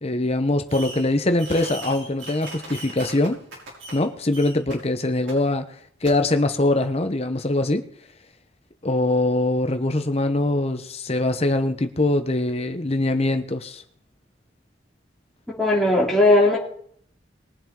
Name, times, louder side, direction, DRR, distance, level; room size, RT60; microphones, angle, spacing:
voice 1, 0.0-3.4 3.9-5.7 6.0-7.9 8.8-13.8, left 2 dB, 35° left, 1.0 m, -22 dB
Fireworks, 0.7-1.1 1.4-4.0 4.3-4.7 5.3-5.4 6.0-6.1, right 2 dB, 90° right, 5.4 m, -38 dB
voice 2, 15.5-16.6, left 2 dB, ahead, 3.6 m, -18 dB
21.5 x 7.7 x 3.8 m
head